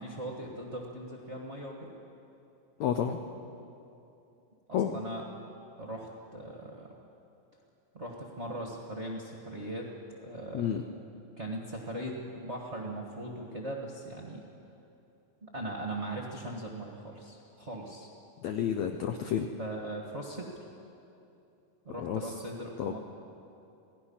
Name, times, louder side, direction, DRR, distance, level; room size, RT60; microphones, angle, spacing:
voice 1, 0.0-1.9 4.7-5.2 5.8-6.9 7.9-10.7 11.4-14.5 15.5-18.1 19.6-20.5 21.8-23.0, right 1 dB, 30° right, -1 dB, 1.3 m, -39 dB
voice 2, 2.8-3.2 4.7-5.0 10.5-10.8 18.4-19.5 22.0-22.3 22.8-23.0, left 9 dB, 75° left, 5 dB, 1.7 m, -30 dB
27.5 x 17.5 x 5.7 m, 2.8 s
omnidirectional pair, 4.1 m